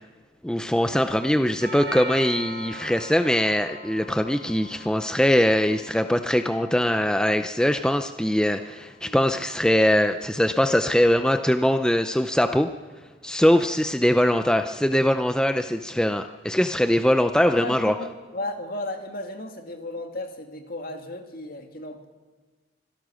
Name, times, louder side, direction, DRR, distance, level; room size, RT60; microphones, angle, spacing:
voice 1, 0.4-12.7 13.2-17.9, equal, 5° left, 8 dB, 0.6 m, -22 dB
Doorbell, 1.6-9.7, right 1 dB, 65° right, 2.4 m, -42 dB
voice 2, 17.6-22.0, left 2 dB, 50° left, 5 dB, 2.4 m, -35 dB
25.5 x 17.0 x 6.4 m, 1.3 s
head